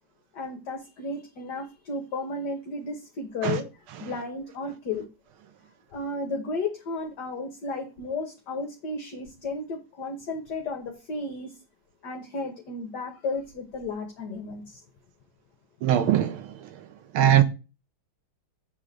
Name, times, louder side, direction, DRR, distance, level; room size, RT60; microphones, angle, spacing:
voice 1, 0.3-5.1 5.9-11.5 12.0-14.8, left 3 dB, 55° left, 1.7 m, -33 dB
voice 2, 15.8-16.5 17.1-17.4, right 11 dB, 85° right, 1.6 m, -20 dB
9.2 x 3.7 x 6.7 m
omnidirectional pair, 2.3 m